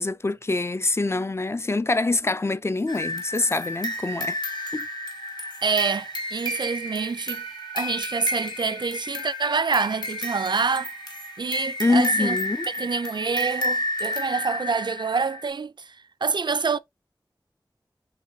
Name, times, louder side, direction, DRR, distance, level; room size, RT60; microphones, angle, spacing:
voice 1, 0.0-4.4 4.7-4.9 11.8-12.7, left 3 dB, 30° left, 0.4 m, -25 dB
sound 1, 2.9-15.5, equal, 60° left, 1.2 m, -31 dB
voice 2, 5.6-7.4 7.7-10.9 11.4-12.4 12.8-15.7 16.2-16.8, right 4 dB, 60° right, 0.4 m, -26 dB
5.9 x 3.0 x 2.7 m
wide cardioid pair, 55°, 8 cm